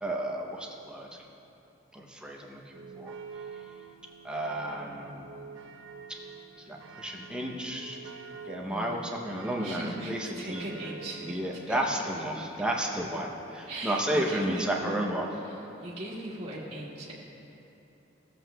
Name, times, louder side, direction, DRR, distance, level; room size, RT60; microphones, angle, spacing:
voice 1, 0.0-1.2 1.9-3.1 3.5-3.7 4.2-5.3 6.6-8.0 8.4-10.6 11.2-15.3, right 1 dB, 5° right, -1 dB, 0.7 m, -32 dB
sound 1, 2.7-11.8, right 5 dB, 85° right, 0.8 m, -47 dB
voice 2, 8.7-9.0 9.6-11.8 13.7-15.0 15.8-17.1, right 1 dB, 30° right, -7 dB, 1.6 m, -38 dB
14.5 x 7.5 x 2.3 m, 3.0 s
head